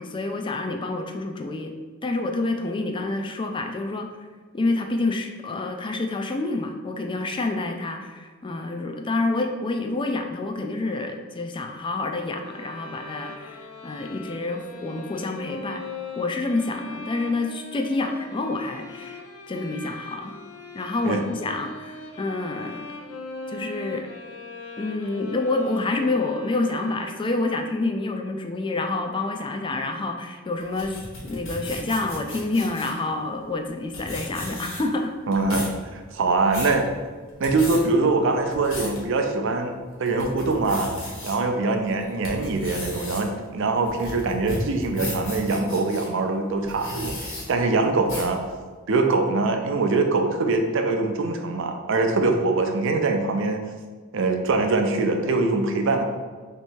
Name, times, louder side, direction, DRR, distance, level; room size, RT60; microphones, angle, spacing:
voice 1, 0.0-1.8 2.0-4.1 4.5-15.8 16.2-19.2 19.5-20.4 20.7-22.8 23.5-24.1 24.8-35.1, left 2 dB, 25° left, 5 dB, 0.4 m, -28 dB
sound 1, 12.4-27.5, left 2 dB, 85° left, 0.5 m, -40 dB
sound 2, 30.6-33.0 33.6-33.7 33.9-35.0 35.3-35.8 36.2-36.8 37.3-37.8 38.3-39.0 39.5-39.6 40.0-41.3 41.9-46.1 46.6-47.4 48.1-48.4, left 1 dB, 70° left, 1.3 m, -35 dB
voice 2, 35.3-36.9 37.4-40.9 41.2-48.4 48.9-53.6 54.1-56.1, right 3 dB, 65° right, 5 dB, 0.5 m, -23 dB
3.2 x 3.0 x 4.5 m, 1.5 s
head